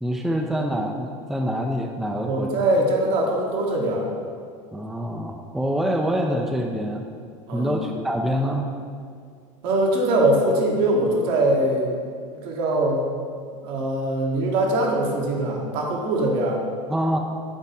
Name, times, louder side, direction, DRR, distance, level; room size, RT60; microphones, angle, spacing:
voice 1, 0.0-2.6 4.7-7.1 7.5-8.7 16.9-17.2, equal, ahead, 2 dB, 0.5 m, -25 dB
voice 2, 2.3-4.1 7.5-7.8 9.6-12.0 12.4-13.1 13.6-16.6, right 1 dB, 60° right, -1 dB, 1.4 m, -22 dB
8.4 x 3.3 x 4.2 m, 2.2 s
hypercardioid pair, 80°, 18 cm